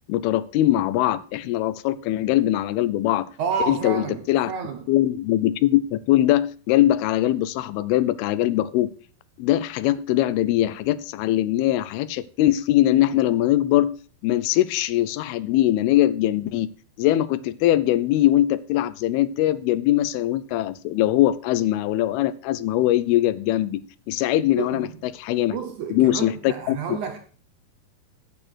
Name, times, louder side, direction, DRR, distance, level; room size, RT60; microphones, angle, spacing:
voice 1, 0.1-3.3 3.7-4.5 4.9-8.9 9.4-14.0 14.2-16.7 17.0-23.8 24.1-25.6 25.9-27.0, left 14 dB, 85° left, 2.5 m, -21 dB
voice 2, 3.4-4.8 24.6-25.0 25.5-27.2, right 6 dB, 70° right, 2.0 m, -30 dB
8.9 x 8.3 x 6.2 m
omnidirectional pair, 4.5 m